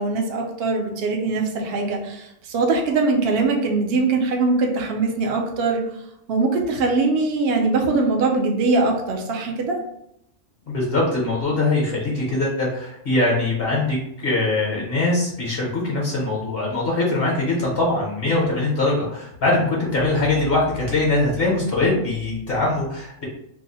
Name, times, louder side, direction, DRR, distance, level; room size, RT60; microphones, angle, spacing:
voice 1, 0.0-5.8 6.3-9.8, right 3 dB, 60° right, 1 dB, 0.8 m, -22 dB
voice 2, 10.7-23.2, left 2 dB, 55° left, -3 dB, 0.9 m, -22 dB
2.7 x 2.0 x 3.9 m, 0.78 s
omnidirectional pair, 1.4 m